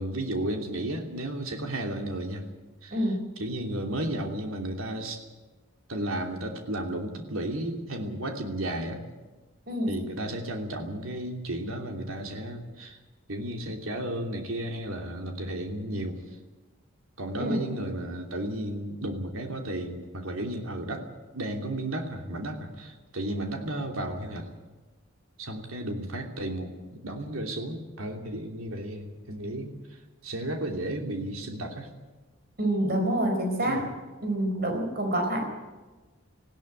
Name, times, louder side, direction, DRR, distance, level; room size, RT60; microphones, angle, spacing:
voice 1, 0.0-2.5 2.8-5.2 5.9-9.0 9.9-13.0 13.3-16.2 17.2-21.1 21.3-24.5 25.4-31.9 33.6-33.8, right 1 dB, 90° right, 4 dB, 3.0 m, -33 dB
voice 2, 32.6-33.8 34.2-35.5, right 1 dB, 50° right, 2 dB, 4.3 m, -27 dB
19.0 x 16.5 x 9.0 m, 1.2 s
head